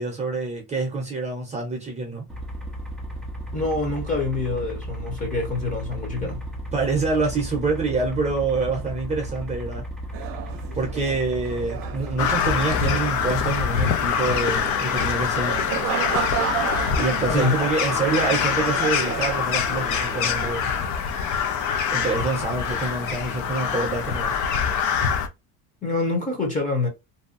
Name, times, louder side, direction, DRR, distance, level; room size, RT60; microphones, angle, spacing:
voice 1, 0.0-2.3 6.2-6.3 6.7-9.8 10.7-15.6 17.0-20.7 21.9-24.4, right 3 dB, 15° right, 0.8 m, -26 dB
sound 1, 2.3-13.5, right 1 dB, ahead, 0.4 m, -34 dB
voice 2, 3.5-6.4 17.3-17.5 25.8-26.9, left 3 dB, 20° left, 1.0 m, -26 dB
sound 2, 10.1-20.6, right 9 dB, 60° right, 0.7 m, -33 dB
Crow, 12.2-25.3, left 7 dB, 50° left, 0.6 m, -24 dB
2.7 x 2.2 x 2.5 m
cardioid pair, 145°, 39 cm